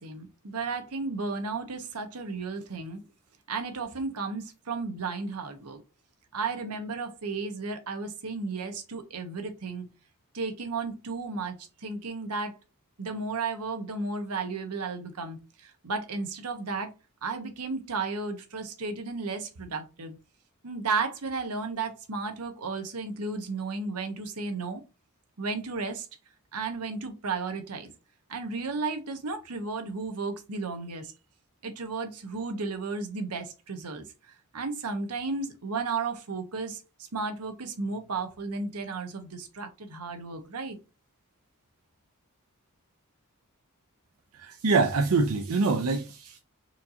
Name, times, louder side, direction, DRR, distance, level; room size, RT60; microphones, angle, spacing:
voice 1, 0.0-3.0 3.5-5.8 6.3-9.9 10.3-11.6 11.8-12.5 13.0-15.4 15.6-16.9 17.2-20.2 20.6-24.8 25.4-26.1 26.5-27.9 28.3-31.1 31.6-34.0 34.5-36.8 37.1-40.8, right 4 dB, 85° right, 0.9 m, -33 dB
voice 2, 44.3-46.4, right 4 dB, 65° right, 0.5 m, -25 dB
4.3 x 2.8 x 2.6 m
head